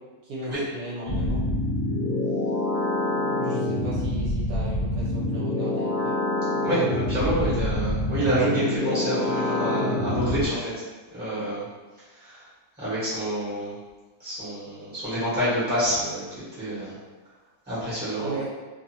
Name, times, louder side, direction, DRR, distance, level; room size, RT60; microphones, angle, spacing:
voice 1, 0.2-1.4 3.4-6.2 18.2-18.5, right 2 dB, 75° right, -6 dB, 1.1 m, -36 dB
sound 1, 1.1-10.4, left 1 dB, 70° left, 0.4 m, -26 dB
voice 2, 6.5-10.7 11.1-11.7 12.1-12.4 12.8-13.8 14.2-16.2 16.5-16.9 17.7-18.4, right 1 dB, 5° right, -11 dB, 1.1 m, -28 dB
2.6 x 2.4 x 2.7 m, 1.3 s
omnidirectional pair, 1.6 m